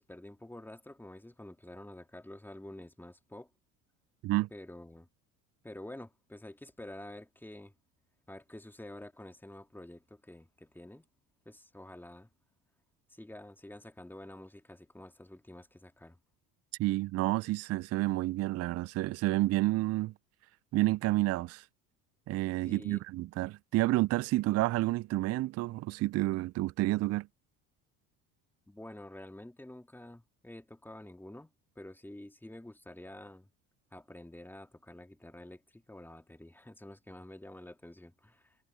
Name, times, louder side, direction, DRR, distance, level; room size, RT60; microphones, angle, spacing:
voice 1, 0.0-3.5 4.5-5.1 5.6-7.7 8.3-11.1 11.4-12.3 13.1-16.2 22.6-23.0 28.7-33.5 33.9-38.6, left 1 dB, 5° left, 2.8 m, -49 dB
voice 2, 16.8-20.1 20.7-21.6 22.3-27.3, right 17 dB, 40° right, 0.4 m, -30 dB
hypercardioid pair, 70°, 41 cm